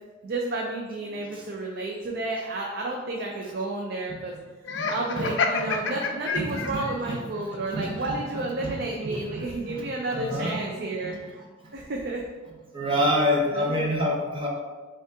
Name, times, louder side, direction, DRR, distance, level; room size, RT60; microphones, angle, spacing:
voice 1, 0.2-4.3 4.9-11.2 11.7-12.2 12.9-13.1 13.5-13.9, right 2 dB, 55° right, -1 dB, 0.4 m, -31 dB
Laughter, 4.6-7.0, left 4 dB, 70° left, 0.4 m, -28 dB
voice 2, 4.7-5.3 5.6-5.8 6.4-7.2 7.5-8.0 8.6-8.8 9.0-9.8 10.1-10.6 11.0-11.1 12.7-14.5, equal, 25° right, -2 dB, 0.7 m, -28 dB
5.3 x 2.4 x 3.5 m, 1.3 s
head